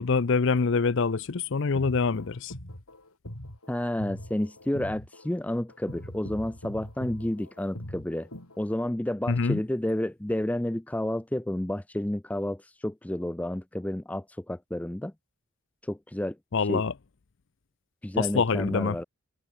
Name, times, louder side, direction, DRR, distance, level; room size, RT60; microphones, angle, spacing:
voice 1, 0.0-2.5 9.3-9.6 16.5-16.9 18.2-19.0, left 4 dB, 55° left, 0.6 m, -25 dB
sound 1, 1.6-8.6, left 1 dB, 80° left, 5.1 m, -41 dB
voice 2, 3.7-8.3 8.6-15.1 15.8-16.4 16.7-16.8 18.0-19.0, left 1 dB, 5° left, 0.4 m, -30 dB
head